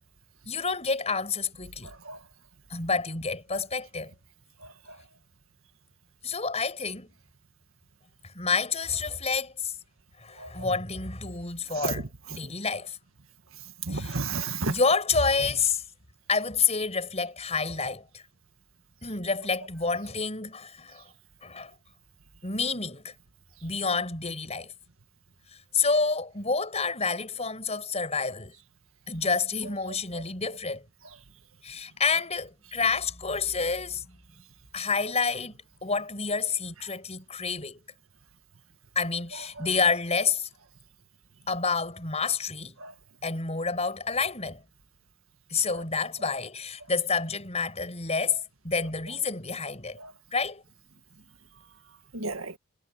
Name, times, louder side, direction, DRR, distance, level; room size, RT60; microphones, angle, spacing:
voice 1, 0.4-1.9 2.7-4.1 6.2-7.1 8.3-9.7 10.2-13.0 13.9-14.2 14.7-15.8 16.3-18.2 19.0-21.0 21.4-21.7 22.4-23.1 23.6-24.7 25.7-28.5 29.1-30.8 31.6-34.2 34.7-37.8 38.9-40.5 41.5-42.7 43.2-44.6 45.5-50.0 50.3-50.6, left 4 dB, 30° left, 6.4 m, -29 dB
voice 2, 13.9-14.7 42.8-42.9 50.0-50.1 52.1-52.6, right 3 dB, 70° right, 1.8 m, -31 dB
head